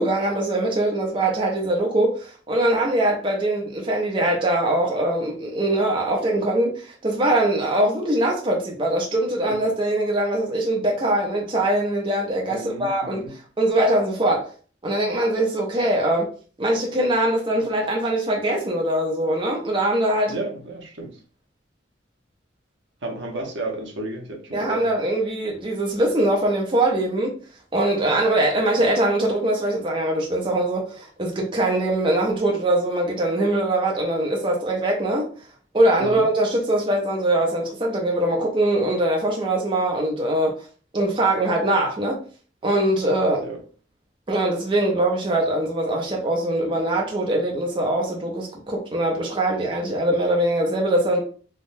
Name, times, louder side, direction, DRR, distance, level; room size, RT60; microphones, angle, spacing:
voice 1, 0.0-13.2 13.6-14.5 14.8-16.3 16.6-20.4 24.5-27.3 27.7-35.3 35.7-40.5 40.9-42.2 42.6-43.4 44.3-51.2, right 1 dB, 25° right, 0.5 m, -22 dB
voice 2, 12.5-13.3 20.3-21.1 23.0-24.9 36.0-36.2 43.4-43.6, right 2 dB, 75° right, 0.7 m, -32 dB
3.5 x 2.1 x 2.5 m
head